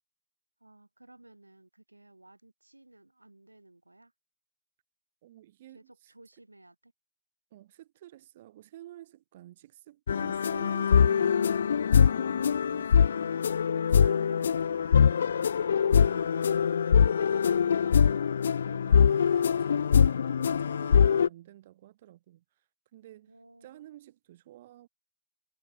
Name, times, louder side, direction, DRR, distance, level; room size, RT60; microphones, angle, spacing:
voice 1, 0.6-4.1 5.7-6.9 23.3-23.8, right 2 dB, 80° right, 3.9 m, -57 dB
voice 2, 5.2-6.1 7.5-18.2 18.7-24.9, right 14 dB, 40° right, 5.1 m, -52 dB
sound 1, 10.1-21.3, left 7 dB, 55° left, 0.3 m, -23 dB
figure-of-eight pair, 125°, 0 cm